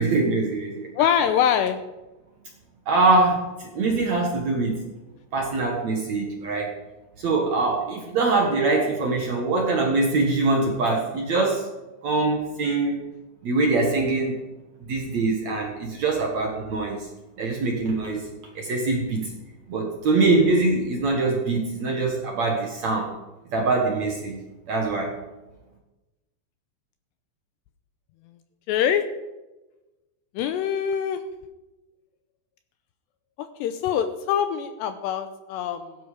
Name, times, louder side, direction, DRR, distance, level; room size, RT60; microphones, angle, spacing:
voice 1, 0.0-0.9 2.9-3.5 3.7-4.9 5.3-6.7 7.2-11.7 12.0-13.1 13.4-14.3 14.9-17.0 17.4-18.2 18.6-19.3 19.7-23.1 23.5-24.4 24.7-25.1, right 3 dB, 55° right, 0 dB, 2.0 m, -23 dB
voice 2, 1.0-1.8 28.7-29.1 30.4-31.2 33.4-36.0, left 9 dB, 85° left, 9 dB, 2.5 m, -24 dB
16.0 x 12.5 x 5.1 m, 1.1 s
omnidirectional pair, 5.6 m